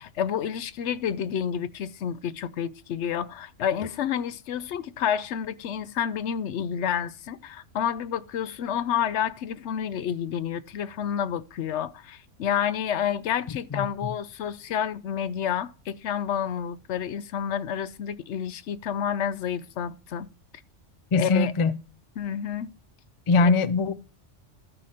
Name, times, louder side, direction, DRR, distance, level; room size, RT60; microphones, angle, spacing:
voice 1, 0.0-20.3 21.1-21.5 22.2-22.7 23.4-23.5, left 9 dB, 70° left, 0.9 m, -29 dB
voice 2, 21.1-21.8 23.3-23.9, left 4 dB, 55° left, 0.3 m, -21 dB
12.5 x 5.1 x 4.2 m
omnidirectional pair, 1.3 m